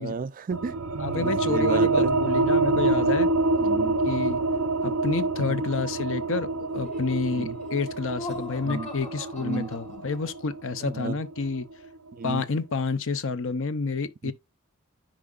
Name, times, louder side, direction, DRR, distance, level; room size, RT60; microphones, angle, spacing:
voice 1, 0.0-2.1 3.6-4.0 5.5-5.6 7.4-7.6 8.6-8.9 9.4-9.7 10.8-11.2 12.1-12.4 14.2-14.3, right 5 dB, 40° right, 0.4 m, -33 dB
sound 1, 0.5-11.7, right 2 dB, 85° right, 0.8 m, -26 dB
voice 2, 1.0-3.3 4.0-4.4 4.8-11.7 12.2-14.3, left 4 dB, 60° left, 0.7 m, -29 dB
Laughter, 6.7-10.4, left 3 dB, 30° left, 1.3 m, -40 dB
10.0 x 4.9 x 2.4 m
head